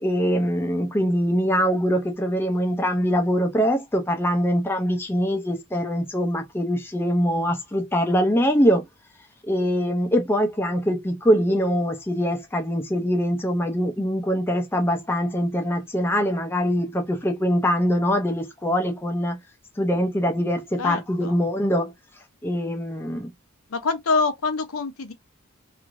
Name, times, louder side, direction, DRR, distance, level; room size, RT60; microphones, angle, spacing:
voice 1, 0.0-8.8 9.4-19.4 19.8-21.9 22.4-23.3, equal, 10° left, 0.4 m, -23 dB
voice 2, 20.8-21.4 23.7-25.1, left 4 dB, 75° left, 0.7 m, -25 dB
3.0 x 2.4 x 2.4 m
head